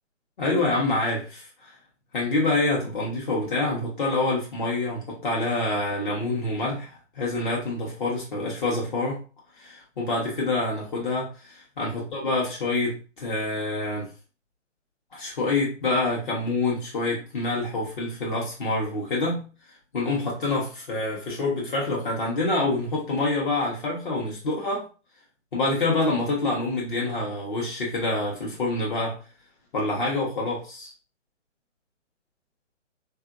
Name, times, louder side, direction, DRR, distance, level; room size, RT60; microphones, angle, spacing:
voice 1, 0.4-1.7 2.1-9.2 9.6-14.1 15.1-19.4 19.9-24.9 25.5-29.2 29.7-30.9, left 2 dB, 40° left, -3 dB, 1.0 m, -26 dB
3.7 x 2.6 x 2.5 m, 0.36 s
figure-of-eight pair, 135°, 37 cm